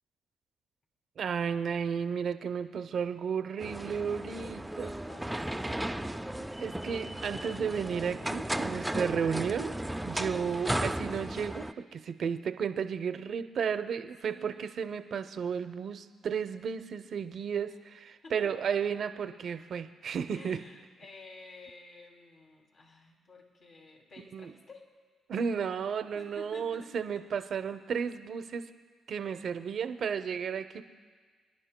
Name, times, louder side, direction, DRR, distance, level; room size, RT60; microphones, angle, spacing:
voice 1, 1.2-4.9 6.6-9.8 10.0-20.6 24.3-24.5 25.3-28.7 29.1-30.9, right 7 dB, 60° right, 10 dB, 0.6 m, -33 dB
sound 1, 3.6-11.7, right 1 dB, 5° right, 0.4 m, -35 dB
voice 2, 4.8-6.6 10.1-10.6 14.2-14.5 18.2-18.5 20.3-24.9 26.1-27.2, left 3 dB, 55° left, 1 dB, 2.5 m, -51 dB
27.0 x 11.0 x 2.2 m, 1.5 s
supercardioid pair, 65°, 0 cm